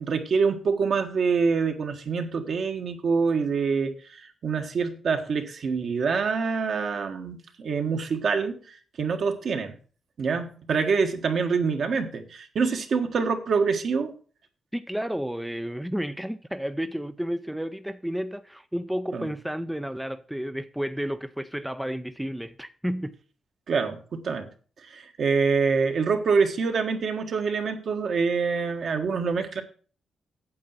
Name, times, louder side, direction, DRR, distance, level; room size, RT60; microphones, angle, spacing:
voice 1, 0.0-8.6 9.0-9.8 10.2-14.1 19.1-19.3 23.7-24.5 24.8-29.6, right 5 dB, 55° right, 1.5 m, -26 dB
voice 2, 14.7-23.1, equal, 5° right, 0.5 m, -31 dB
8.6 x 7.8 x 5.7 m
cardioid pair, 130°, 0 cm